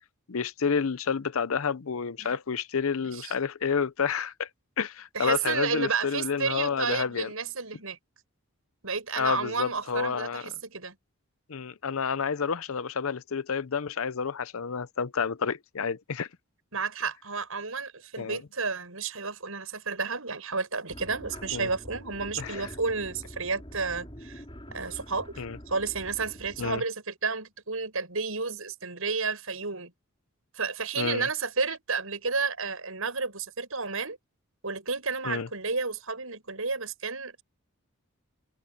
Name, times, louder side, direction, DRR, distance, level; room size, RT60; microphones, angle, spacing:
voice 1, 0.3-4.5 4.8-7.3 9.2-10.5 11.5-16.3 18.2-18.4 21.5-21.7 22.4-22.7 25.4-25.6 26.6-26.8 31.0-31.3 35.2-35.5, left 6 dB, 75° left, 0.7 m, -29 dB
voice 2, 5.1-8.0 8.8-10.9 16.7-24.4 24.7-25.3 25.7-29.9 30.5-34.2 34.6-37.4, right 4 dB, 75° right, 6.4 m, -31 dB
sound 1, 20.9-26.8, equal, 25° left, 6.1 m, -45 dB
head